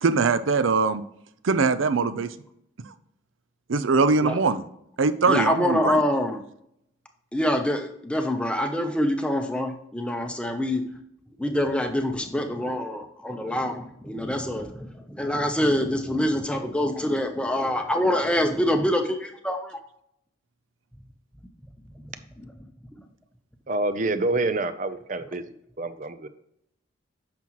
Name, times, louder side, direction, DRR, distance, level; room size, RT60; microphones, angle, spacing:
voice 1, 0.0-1.0 1.4-2.3 2.9-3.0 3.7-4.6 5.0-6.0, right 4 dB, 85° right, 13 dB, 0.6 m, -22 dB
voice 2, 5.3-6.4 7.3-10.8 11.4-19.8 22.4-22.5 22.9-23.0, left 1 dB, 5° left, 5 dB, 0.7 m, -25 dB
voice 3, 23.7-25.4 25.8-26.3, right 2 dB, 40° right, 12 dB, 0.5 m, -27 dB
9.3 x 6.0 x 3.1 m, 0.74 s
head